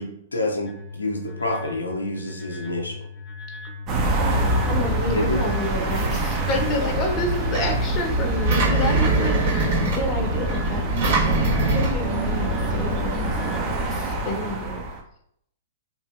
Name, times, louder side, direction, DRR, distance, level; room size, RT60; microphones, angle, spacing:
voice 1, 0.0-3.0 5.1-5.4, left 1 dB, 90° left, 1 dB, 0.5 m, -28 dB
sound 1, 0.6-13.6, left 4 dB, 85° right, 1.5 m, -38 dB
sound 2, 3.9-15.0, right 2 dB, 30° right, 0.5 m, -25 dB
voice 2, 4.2-14.8, left 2 dB, 30° left, 2 dB, 0.6 m, -30 dB
Engine, 7.1-13.2, right 2 dB, 65° right, 1.3 m, -25 dB
2.7 x 2.4 x 2.4 m, 0.72 s
hypercardioid pair, 115°, 0 cm